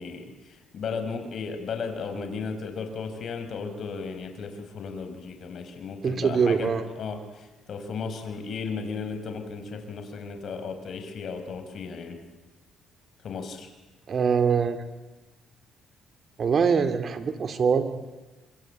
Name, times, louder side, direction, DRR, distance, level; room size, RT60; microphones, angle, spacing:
voice 1, 0.0-12.2 13.2-13.7, left 5 dB, 55° left, 7 dB, 4.8 m, -35 dB
voice 2, 6.0-6.8 14.1-14.8 16.4-17.8, right 6 dB, 45° right, 9 dB, 2.8 m, -23 dB
25.5 x 24.0 x 8.9 m, 1.2 s
cardioid pair, 100°, 0 cm